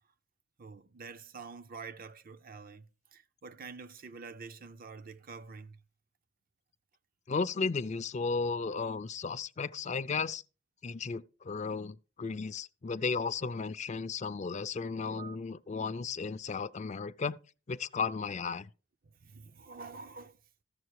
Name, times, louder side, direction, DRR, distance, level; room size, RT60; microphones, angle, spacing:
voice 1, 0.6-5.8 15.1-15.4 19.2-20.4, right 4 dB, 50° right, 0.6 m, -47 dB
voice 2, 7.3-10.4 10.8-17.4 17.7-18.7, left 4 dB, 40° left, 0.4 m, -34 dB
14.5 x 7.2 x 4.7 m
head